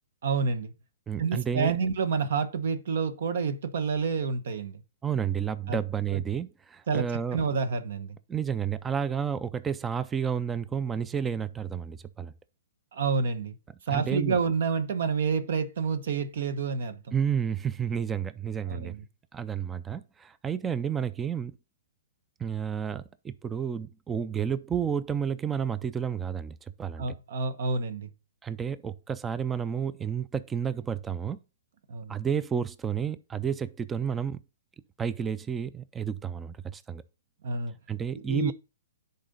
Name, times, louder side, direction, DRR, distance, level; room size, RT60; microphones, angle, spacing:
voice 1, 0.2-0.7 1.2-4.8 5.7-5.8 6.1-6.2 6.9-7.0 7.3-8.2 12.9-13.5 13.9-17.1 18.7-19.0 27.0-28.1 31.9-32.1 37.4-37.7 38.2-38.5, right 5 dB, 65° right, 1.0 m, -28 dB
voice 2, 1.1-1.7 5.0-7.4 8.3-12.3 13.9-14.4 17.1-19.0 19.3-21.5 22.4-27.1 28.4-31.4 32.1-34.4 35.0-37.0 37.9-38.5, right 7 dB, 10° right, 0.4 m, -31 dB
10.5 x 4.2 x 4.0 m
hypercardioid pair, 150°, 0 cm